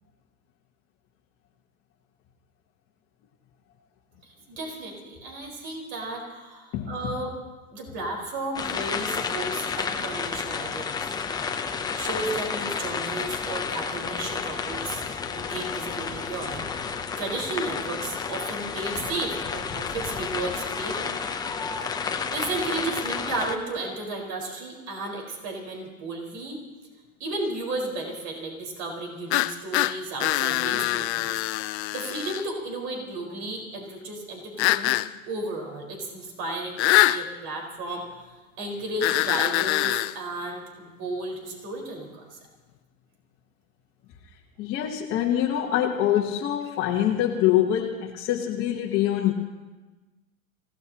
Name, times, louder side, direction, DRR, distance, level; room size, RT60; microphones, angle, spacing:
voice 1, 4.2-7.3 7.7-11.1 11.9-15.0 15.3-21.3 21.9-26.6 27.2-31.4 31.9-34.9 35.3-38.0 38.6-42.4, right 2 dB, 50° right, 0 dB, 4.8 m, -34 dB
voice 2, 6.7-7.2 44.6-49.3, left 11 dB, 30° left, -2 dB, 1.2 m, -25 dB
sound 1, 8.5-23.6, left 5 dB, 10° left, 0.7 m, -31 dB
sound 2, 29.3-32.5 34.6-35.1 36.8-37.2 39.0-40.1, left 17 dB, 50° left, 0.6 m, -24 dB
27.0 x 17.5 x 3.0 m, 1.2 s
hypercardioid pair, 130°, 42 cm